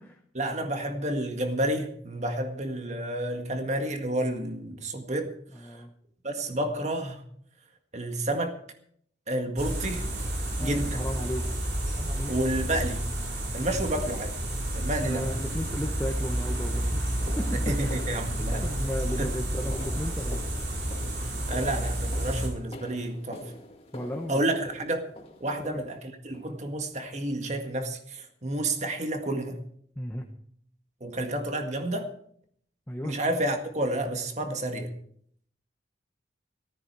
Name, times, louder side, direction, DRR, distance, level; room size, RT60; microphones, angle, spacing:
voice 1, 0.4-5.3 5.6-5.8 6.2-7.2 7.9-8.6 9.3-10.1 10.6-11.0 12.3-13.0 13.5-14.3 14.7-15.3 17.7-18.7 19.2-19.3 21.2-23.4 24.3-25.0 25.4-29.6 31.0-32.1 33.0-34.9, right 1 dB, 40° right, 5 dB, 1.8 m, -30 dB
voice 2, 5.5-5.9 10.6-11.4 12.0-12.4 15.0-18.0 18.6-20.5 23.9-24.4 25.6-25.8 30.0-30.2 32.9-33.2, equal, 10° left, 1 dB, 1.0 m, -35 dB
sound 1, 9.6-22.5, right 1 dB, 65° right, 4.7 m, -30 dB
sound 2, 16.7-25.9 26.3-26.7 27.0-27.2 27.6-27.7 28.2-28.3 28.8-28.9, left 1 dB, 30° left, 2.0 m, -46 dB
14.5 x 14.0 x 4.8 m, 0.63 s
head